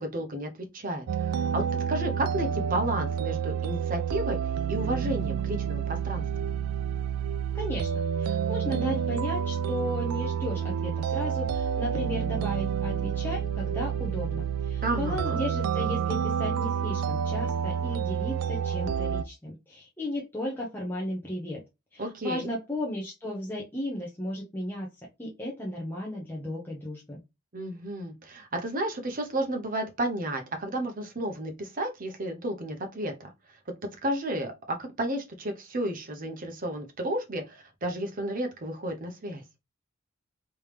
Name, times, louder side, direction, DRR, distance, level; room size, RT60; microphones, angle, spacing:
voice 1, 0.0-1.6 1.9-4.4 4.7-6.2 14.8-15.4 22.0-22.5 27.5-33.3 34.0-39.4, right 1 dB, 40° right, 0.8 m, -32 dB
sound 1, 1.1-19.2, right 8 dB, 80° right, 0.4 m, -29 dB
voice 2, 7.5-7.9 8.2-21.6 21.9-24.9 25.2-27.2, left 1 dB, 10° left, 0.7 m, -35 dB
3.4 x 3.0 x 3.3 m
head